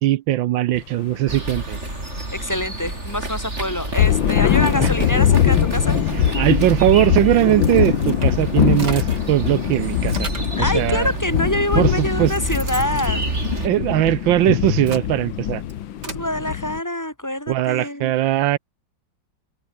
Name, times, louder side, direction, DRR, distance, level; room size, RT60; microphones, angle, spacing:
voice 1, 0.0-1.8 4.8-4.9 6.1-10.3 10.6-11.1 11.8-12.3 13.6-15.6 17.5-18.6, right 14 dB, 80° right, 1.4 m, -20 dB
sound 1, 0.7-0.9 1.3-1.6 3.7-16.8, left 11 dB, 75° left, 1.8 m, -22 dB
sound 2, 1.3-13.7, right 2 dB, 35° right, 5.6 m, -28 dB
voice 2, 2.3-6.0 10.6-13.3 16.1-18.1, left 1 dB, 10° left, 2.3 m, -25 dB
sound 3, 7.5-9.3 9.7-10.6 11.4-11.5 12.0-14.1 14.6-16.3, right 3 dB, 55° right, 5.0 m, -37 dB
omnidirectional pair, 2.2 m